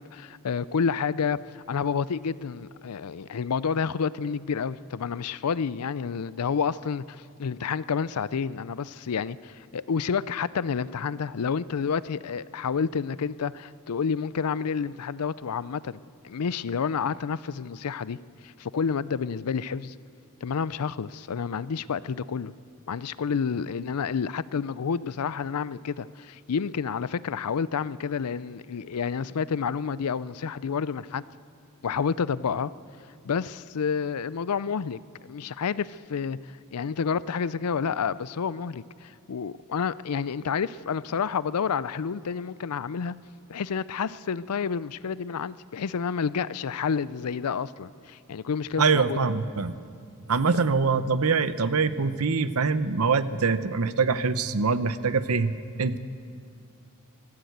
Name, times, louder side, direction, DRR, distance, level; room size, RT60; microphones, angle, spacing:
voice 1, 0.0-16.0 16.2-18.2 18.4-19.9 20.4-22.5 22.9-31.2 31.8-32.7 33.2-36.4 36.7-43.1 43.5-49.2, left 6 dB, 85° left, 18 dB, 0.5 m, -29 dB
voice 2, 48.8-49.7 50.3-56.0, right 4 dB, 70° right, 13 dB, 0.8 m, -24 dB
23.0 x 14.5 x 8.0 m, 2.4 s
head